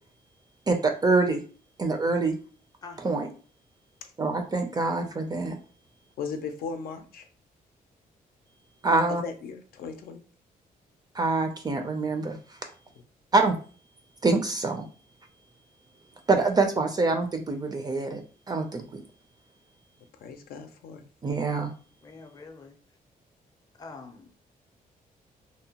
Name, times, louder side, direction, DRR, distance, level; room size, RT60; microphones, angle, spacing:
voice 1, 0.7-1.4 1.8-2.4 3.0-3.3 4.2-5.6 8.8-9.2 11.1-12.6 13.3-13.6 14.2-14.9 16.3-18.2 18.5-19.0 21.2-21.7, right 3 dB, 25° right, 0.4 m, -25 dB
voice 2, 2.8-3.2 4.9-5.5 22.0-22.8 23.8-24.3, left 4 dB, 25° left, 0.5 m, -46 dB
voice 3, 6.2-7.3 9.2-10.2 20.1-21.1, left 5 dB, 90° left, 0.5 m, -37 dB
2.7 x 2.1 x 2.8 m
cardioid pair, 125°, 15 cm